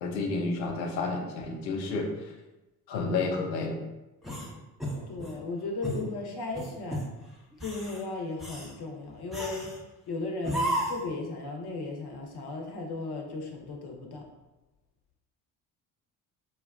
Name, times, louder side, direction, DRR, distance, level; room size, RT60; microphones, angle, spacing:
voice 1, 0.0-2.1 2.9-3.8, left 3 dB, 90° left, 2 dB, 0.6 m, -30 dB
sound 1, 4.2-5.4 5.8-6.1 6.5-7.1 7.5-8.0 8.4-8.7 9.3-9.8 10.4-11.1, right 1 dB, ahead, 0.9 m, -33 dB
voice 2, 5.1-7.1 7.6-9.7 10.1-14.3, left 3 dB, 50° left, 1 dB, 0.9 m, -36 dB
4.7 x 2.2 x 2.3 m, 1.0 s
hypercardioid pair, 55°, 49 cm